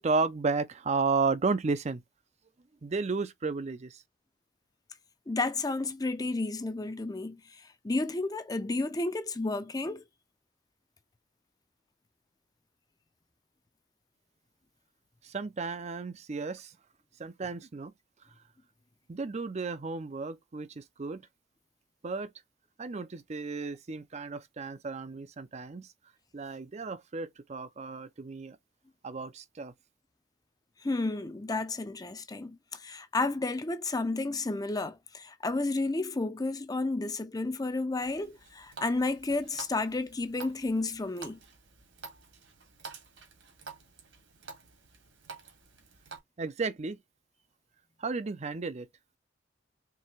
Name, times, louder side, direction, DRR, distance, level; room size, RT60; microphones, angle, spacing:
voice 1, 0.0-2.0 2.8-4.0 15.2-16.8 17.2-17.9 18.2-18.4 19.1-21.3 22.0-22.3 22.8-25.9 26.3-28.6 29.0-29.7 46.4-47.0 48.0-48.9, right 4 dB, 35° right, 0.5 m, -33 dB
voice 2, 5.3-7.4 7.8-10.0 30.8-41.4, left 2 dB, 20° left, 0.5 m, -31 dB
Water tap faucet, 38.0-46.2, right 4 dB, 70° right, 1.8 m, -49 dB
4.6 x 3.3 x 3.1 m
head